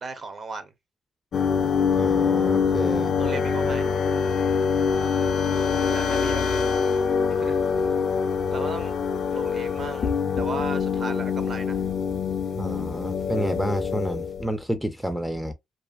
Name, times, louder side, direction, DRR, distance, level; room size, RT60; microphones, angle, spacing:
voice 1, 0.0-0.7 3.2-3.9 5.9-6.4 7.3-7.9 8.5-8.9 9.3-10.1 10.4-11.9, right 4 dB, 45° right, 0.6 m, -36 dB
sound 1, 1.3-14.5, left 6 dB, 55° left, 0.5 m, -24 dB
voice 2, 1.9-3.2 12.6-15.5, equal, ahead, 0.4 m, -29 dB
2.5 x 2.4 x 2.3 m
cardioid pair, 90°, 0 cm